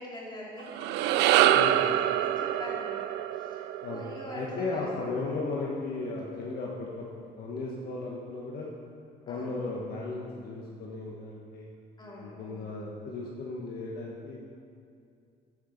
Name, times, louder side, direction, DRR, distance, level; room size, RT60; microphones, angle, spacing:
voice 1, 0.0-4.8 9.3-9.6 12.0-12.7, left 1 dB, 25° left, -5 dB, 3.1 m, -44 dB
sound 1, 0.6-5.1, right 12 dB, 85° right, 0.4 m, -26 dB
voice 2, 4.3-7.0 7.4-8.7 9.3-11.7 12.2-14.4, left 3 dB, 60° left, -3 dB, 1.3 m, -35 dB
14.5 x 6.4 x 5.1 m, 2.4 s
cardioid pair, 110°, 17 cm